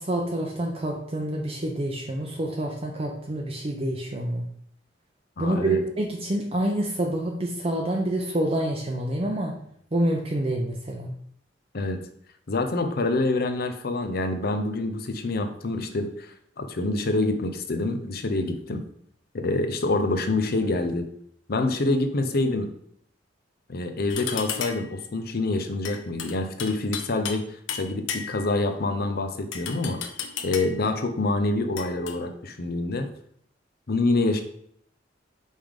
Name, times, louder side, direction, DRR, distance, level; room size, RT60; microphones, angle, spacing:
voice 1, 0.0-4.4 5.4-9.6 9.9-11.1, right 1 dB, 30° right, 0 dB, 0.7 m, -27 dB
voice 2, 5.4-5.8 11.7-12.0 12.5-18.8 19.4-21.0 21.5-22.7 23.7-30.0 30.4-33.1 33.9-34.4, left 2 dB, 55° left, 7 dB, 0.7 m, -26 dB
sound 1, 24.1-24.9 25.8-27.4 27.7-28.6 29.5-30.8 31.8-32.2, left 7 dB, 85° left, 0.7 m, -34 dB
5.3 x 3.6 x 5.1 m, 0.67 s
head